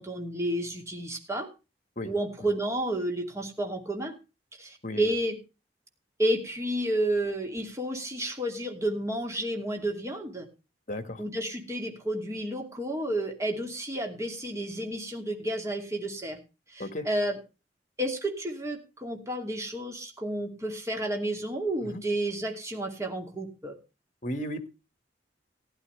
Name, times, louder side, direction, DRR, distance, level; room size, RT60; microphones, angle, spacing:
voice 1, 0.0-1.5 2.0-4.1 4.6-5.4 6.2-10.5 11.2-16.4 16.7-17.4 18.0-23.7, right 1 dB, 15° right, 3 dB, 2.5 m, -31 dB
voice 2, 10.9-11.2 16.8-17.1 21.9-22.0 24.2-24.7, left 1 dB, 45° left, 10 dB, 1.6 m, -34 dB
15.5 x 11.5 x 3.3 m, 0.30 s
head